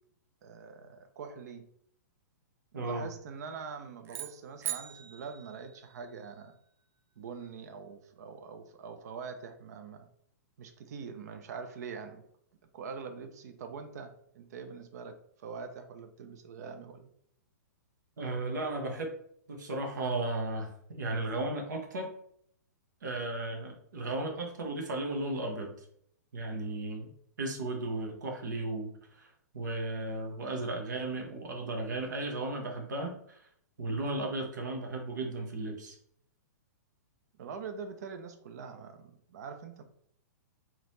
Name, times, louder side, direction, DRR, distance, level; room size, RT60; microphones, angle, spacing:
voice 1, 0.4-1.7 2.8-6.6 7.2-10.1 10.6-12.2 12.7-17.1 37.4-39.8, right 5 dB, 60° right, 7 dB, 0.7 m, -44 dB
voice 2, 2.7-3.1 18.2-19.1 19.5-22.1 23.0-25.7 26.3-27.1 27.4-33.4 33.8-35.9, right 2 dB, 75° right, 1 dB, 1.1 m, -35 dB
sound 1, 4.0-6.4, right 11 dB, 25° right, 0.4 m, -41 dB
3.9 x 2.9 x 3.2 m, 0.66 s
hypercardioid pair, 130°, 10 cm